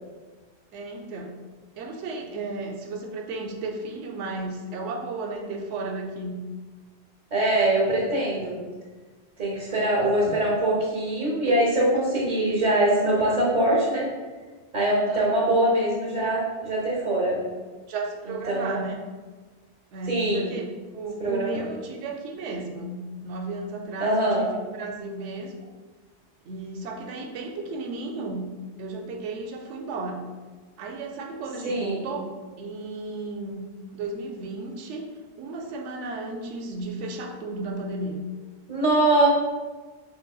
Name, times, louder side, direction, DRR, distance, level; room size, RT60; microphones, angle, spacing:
voice 1, 0.7-1.4 1.8-6.4 9.6-10.1 15.1-15.2 17.9-19.0 19.9-20.6 20.9-25.6 26.4-28.5 28.8-30.3 30.8-32.3 32.6-33.6 33.9-38.2, right 3 dB, 85° right, 2 dB, 0.9 m, -34 dB
voice 2, 7.3-8.6 9.4-14.1 14.7-17.4 18.5-18.8 20.1-20.5 21.2-21.6 24.0-24.4 31.6-32.0 38.7-39.3, right 1 dB, 45° right, -3 dB, 0.9 m, -23 dB
3.8 x 3.6 x 2.3 m, 1.4 s
omnidirectional pair, 1.2 m